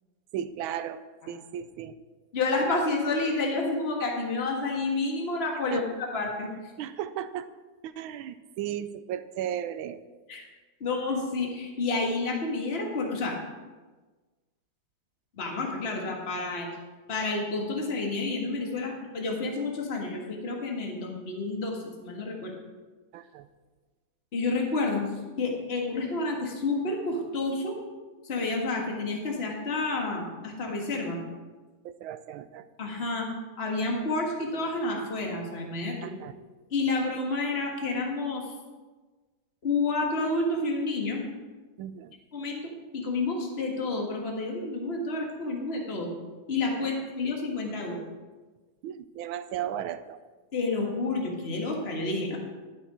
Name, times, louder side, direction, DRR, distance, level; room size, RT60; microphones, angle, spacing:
voice 1, 0.3-2.0 5.7-5.9 6.8-7.5 7.8-10.0 23.1-23.5 31.8-32.7 36.0-36.4 41.8-42.1 46.8-46.9 48.8-50.2, right 10 dB, 85° right, 13 dB, 1.4 m, -35 dB
voice 2, 2.3-6.5 10.3-10.4 10.8-13.4 15.4-16.7 17.1-22.5 24.3-25.1 25.4-27.8 28.2-31.2 32.8-33.3 33.6-36.1 36.7-38.5 39.6-41.2 42.3-46.1 46.5-48.0 50.5-52.4, left 3 dB, 30° left, 0 dB, 1.8 m, -29 dB
12.0 x 8.1 x 4.9 m, 1.3 s
omnidirectional pair, 2.2 m